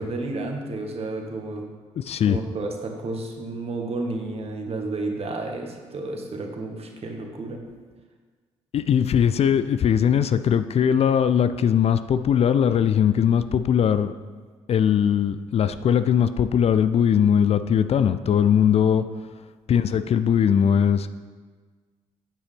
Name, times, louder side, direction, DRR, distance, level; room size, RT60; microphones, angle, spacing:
voice 1, 0.0-1.6 2.2-7.6 19.0-19.1, right 2 dB, 45° right, 2 dB, 1.7 m, -31 dB
voice 2, 2.0-2.4 8.7-14.1 14.7-19.0 19.7-21.1, left 8 dB, 45° left, 12 dB, 0.4 m, -20 dB
9.1 x 8.8 x 3.5 m, 1.5 s
hypercardioid pair, 45°, 15 cm